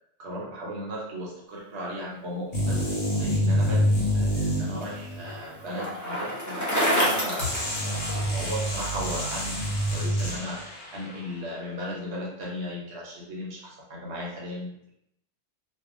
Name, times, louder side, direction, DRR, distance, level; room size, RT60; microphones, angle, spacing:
voice 1, 0.2-14.9, equal, 75° right, -4 dB, 1.0 m, -36 dB
sound 1, 2.5-5.4 7.4-10.8, equal, 85° left, 1.2 m, -26 dB
Bicycle, 4.1-8.5, equal, 25° left, 0.4 m, -28 dB
2.7 x 2.2 x 2.4 m, 0.78 s
omnidirectional pair, 1.2 m